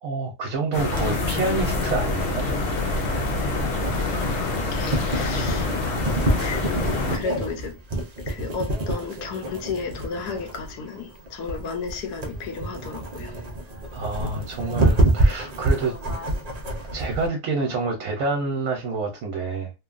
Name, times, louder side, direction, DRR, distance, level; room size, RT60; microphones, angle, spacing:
voice 1, 0.0-2.5 2.8-2.9 13.9-16.0 16.9-19.8, right 3 dB, 65° right, 1.0 m, -28 dB
sound 1, 0.7-7.2, left 2 dB, 65° left, 0.9 m, -26 dB
sound 2, 1.0-17.3, right 1 dB, 85° right, 0.3 m, -27 dB
voice 2, 4.3-5.7 6.4-13.3, left 5 dB, 80° left, 1.2 m, -33 dB
3.0 x 2.2 x 2.4 m
omnidirectional pair, 1.7 m